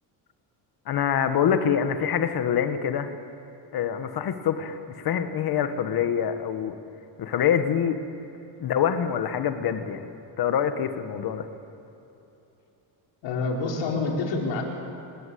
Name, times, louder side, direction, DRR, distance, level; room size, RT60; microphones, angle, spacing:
voice 1, 0.9-3.1 3.7-6.8 7.2-8.0 8.6-10.0 10.4-11.5, left 8 dB, 50° left, 8 dB, 1.7 m, -25 dB
voice 2, 13.2-14.6, left 3 dB, 70° left, 0 dB, 4.7 m, -27 dB
28.0 x 19.5 x 8.6 m, 2.9 s
cardioid pair, 160°, 46 cm